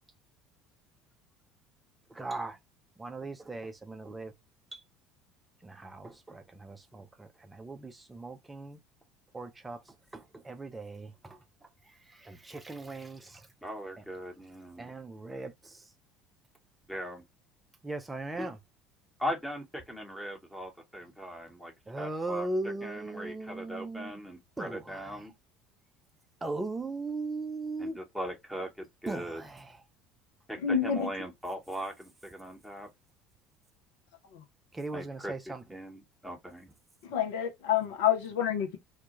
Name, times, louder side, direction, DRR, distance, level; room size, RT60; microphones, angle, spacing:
voice 1, 2.1-2.6 3.0-4.3 4.7-4.8 5.6-8.8 9.3-9.8 10.1-11.4 12.1-13.5 14.8-15.8 17.8-18.6 21.9-24.2 24.6-25.2 26.4-28.0 29.1-29.7 34.7-35.6, right 2 dB, 15° right, 0.4 m, -38 dB
voice 2, 13.6-14.9 16.9-17.2 19.2-25.3 27.8-29.4 30.5-32.9 34.9-36.7, equal, ahead, 0.9 m, -40 dB
voice 3, 30.6-31.1 37.1-38.8, left 9 dB, 65° left, 0.4 m, -28 dB
2.1 x 2.1 x 2.9 m
figure-of-eight pair, 65°, 0 cm